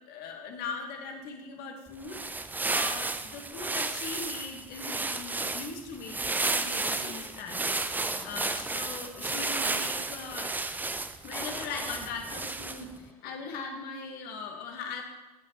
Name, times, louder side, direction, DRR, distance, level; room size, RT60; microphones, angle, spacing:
voice 1, 0.1-2.2 2.7-7.9 8.2-10.5 11.2-15.0, left 4 dB, 50° left, 3 dB, 1.7 m, -40 dB
sound 1, 1.9-13.0, right 3 dB, 10° right, 0.5 m, -32 dB
sound 2, 8.0-10.1 11.2-13.7, left 1 dB, 10° left, 1.7 m, -50 dB
16.0 x 5.8 x 3.2 m, 1.1 s
figure-of-eight pair, 75°, 20 cm